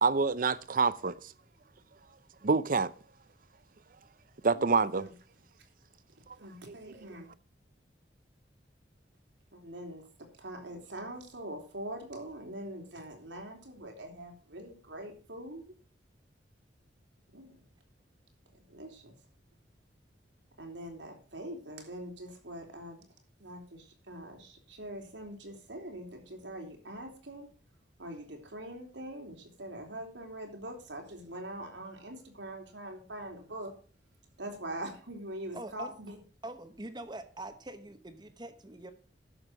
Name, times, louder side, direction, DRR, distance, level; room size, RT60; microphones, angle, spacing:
voice 1, 0.0-1.2 2.4-2.9 4.4-5.1, right 4 dB, 50° right, 0.6 m, -26 dB
voice 2, 4.5-5.1 6.3-7.3 9.5-15.7 17.3-17.5 18.5-19.2 20.6-23.1 23.4-27.5 28.0-33.7 34.4-36.2, right 1 dB, 90° right, 3.6 m, -43 dB
voice 3, 35.5-35.9 36.4-38.9, right 2 dB, 25° right, 1.0 m, -43 dB
11.0 x 7.3 x 6.1 m
head